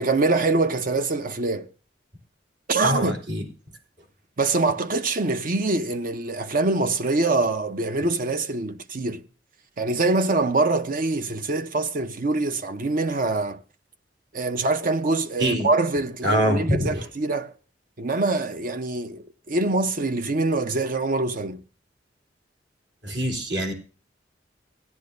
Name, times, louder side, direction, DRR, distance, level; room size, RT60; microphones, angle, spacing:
voice 1, 0.0-1.7 2.7-3.2 4.4-9.2 9.8-13.6 14.3-17.5 18.0-21.6, right 3 dB, 50° right, 0.7 m, -24 dB
voice 2, 2.8-3.4 15.4-15.7 16.2-17.1 23.0-23.7, equal, 70° right, 3.4 m, -24 dB
16.5 x 10.5 x 2.6 m
head